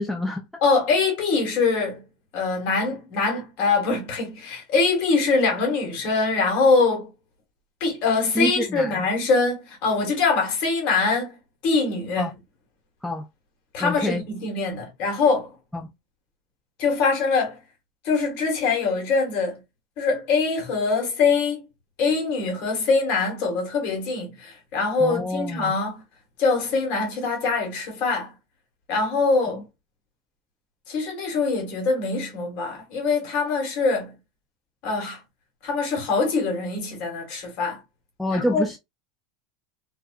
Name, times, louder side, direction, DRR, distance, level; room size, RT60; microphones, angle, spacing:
voice 1, 0.0-0.5 8.4-9.1 12.2-12.3 13.0-13.2 13.8-14.2 15.7-15.8 25.0-25.7 38.2-38.8, left 1 dB, 5° left, 0.4 m, -27 dB
voice 2, 0.6-2.0 2.3-7.1 7.8-11.4 11.6-12.3 13.7-15.5 16.8-17.6 18.0-19.6 20.0-21.6 22.0-26.0 26.4-28.3 28.9-29.6 30.9-34.1 34.8-35.2 35.6-37.8 38.3-38.6, left 4 dB, 50° left, 1.3 m, -23 dB
2.4 x 2.3 x 2.3 m
supercardioid pair, 120°, 3 cm